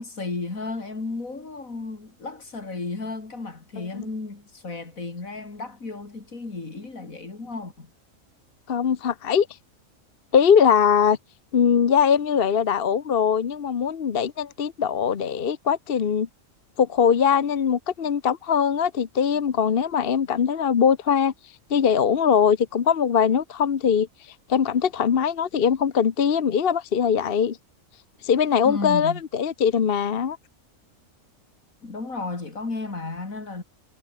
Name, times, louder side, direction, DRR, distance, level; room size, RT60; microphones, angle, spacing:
voice 1, 0.0-7.9 28.6-29.2 31.8-33.6, left 3 dB, 80° left, 4.0 m, -33 dB
voice 2, 8.7-9.5 10.3-11.2 11.5-16.3 16.8-21.3 21.7-24.1 24.5-27.6 28.2-30.4, left 7 dB, 50° left, 1.1 m, -21 dB
omnidirectional pair, 1.4 m